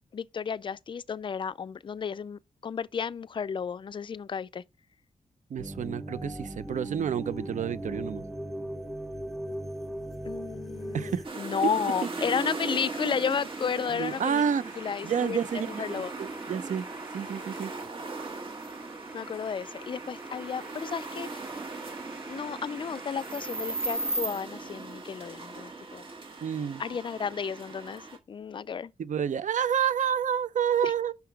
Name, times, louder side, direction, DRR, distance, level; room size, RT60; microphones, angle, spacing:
voice 1, 0.1-4.6 10.2-14.4 14.8-16.1 19.1-21.6 22.3-26.0 26.8-28.9 30.8-30.9, left 6 dB, 35° left, 0.3 m, -33 dB
voice 2, 5.5-8.2 10.9-11.2 14.0-14.7 15.0-16.9 17.1-17.7 26.4-26.8 29.0-31.1, right 8 dB, 65° right, 0.6 m, -29 dB
sound 1, 5.6-11.2, equal, ahead, 0.7 m, -38 dB
sound 2, 6.1-24.2, right 2 dB, 20° right, 1.4 m, -49 dB
sound 3, 11.2-28.2, right 3 dB, 40° right, 1.7 m, -38 dB
5.8 x 5.8 x 4.6 m
wide cardioid pair, 145°, 14 cm